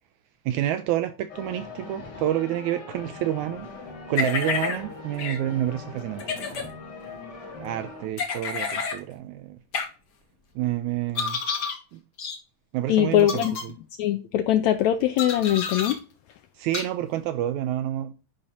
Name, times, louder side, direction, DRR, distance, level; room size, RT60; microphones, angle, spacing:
voice 1, 0.5-3.7 4.1-6.7 7.6-9.6 10.6-11.4 11.9-12.0 12.7-13.7 16.6-18.1, right 12 dB, 80° right, 1.7 m, -29 dB
sound 1, 1.3-8.1, left 3 dB, 40° left, 2.0 m, -41 dB
sound 2, 4.1-4.8 5.2-5.4 6.2-6.7 8.2-9.0 9.7-9.9 11.1-11.8 12.2-12.4 13.2-13.6 15.2-15.9 16.7-16.8, left 5 dB, 60° left, 1.0 m, -29 dB
voice 2, 12.9-13.5 14.0-16.0, left 12 dB, 80° left, 1.6 m, -21 dB
10.0 x 4.1 x 5.7 m
omnidirectional pair, 3.8 m